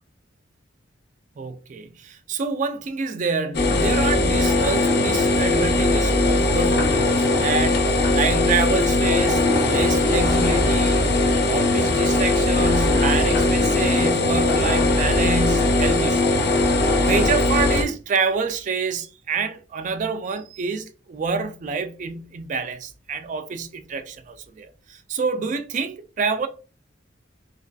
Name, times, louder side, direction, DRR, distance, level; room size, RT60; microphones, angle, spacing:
voice 1, 1.4-11.2 11.5-16.6 17.0-26.5, right 4 dB, 40° right, 0.3 m, -27 dB
sound 1, 3.5-17.8, left 2 dB, 60° left, 0.5 m, -19 dB
2.4 x 2.3 x 2.2 m
head